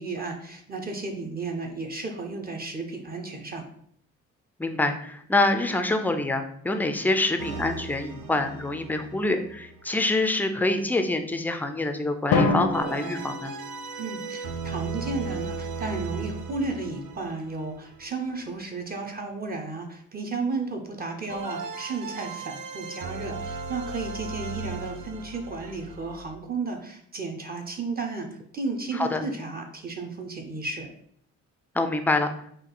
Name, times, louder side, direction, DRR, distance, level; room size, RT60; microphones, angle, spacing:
voice 1, 0.0-3.6 14.0-28.3 28.5-30.9, right 3 dB, 30° right, 2 dB, 0.6 m, -33 dB
voice 2, 4.6-13.5 28.9-29.2 31.7-32.3, left 2 dB, 5° left, 6 dB, 0.4 m, -26 dB
sound 1, 7.4-10.1 12.7-18.4 21.3-26.4, right 4 dB, 80° right, 0.6 m, -37 dB
Drum, 12.3-14.3, left 3 dB, 85° left, 0.7 m, -26 dB
3.7 x 2.4 x 3.8 m, 0.66 s
cardioid pair, 90°, 30 cm